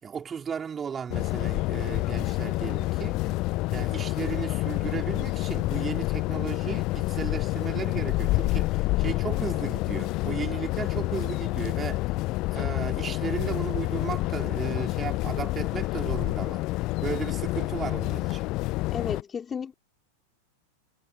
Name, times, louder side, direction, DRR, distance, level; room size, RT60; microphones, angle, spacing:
voice 1, 0.0-3.2 3.7-12.1 12.5-16.7 17.0-18.5, right 7 dB, 20° right, 4.6 m, -35 dB
sound 1, 1.1-19.2, left 20 dB, 40° left, 0.7 m, -28 dB
voice 2, 18.9-19.7, left 7 dB, 20° left, 4.9 m, -33 dB
figure-of-eight pair, 90°, 0 cm